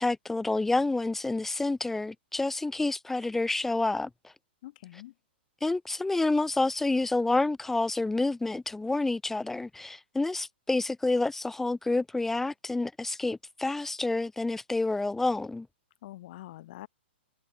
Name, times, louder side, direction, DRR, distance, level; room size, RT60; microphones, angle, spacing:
voice 1, 0.0-4.1 5.6-15.7, left 2 dB, 5° left, 0.5 m, -28 dB
voice 2, 4.6-5.1 16.0-16.9, left 15 dB, 50° left, 5.8 m, -45 dB
hypercardioid pair, 140°, 6 cm